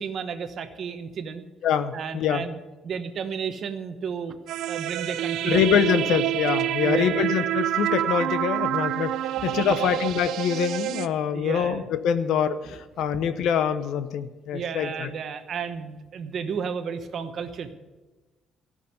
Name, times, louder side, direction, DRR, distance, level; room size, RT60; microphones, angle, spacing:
voice 1, 0.0-1.4 1.9-2.6 2.8-4.3 4.7-5.6 6.0-6.1 6.8-7.2 9.4-9.9 11.3-11.9 12.6-12.8 14.5-17.7, right 6 dB, 45° right, 9 dB, 1.1 m, -33 dB
voice 2, 1.6-2.4 5.5-9.2 9.4-15.1, left 8 dB, 70° left, 12 dB, 0.8 m, -25 dB
sound 1, 4.5-11.1, right 13 dB, 75° right, 0.4 m, -27 dB
14.5 x 6.4 x 9.4 m, 1.2 s
cardioid pair, 150°, 0 cm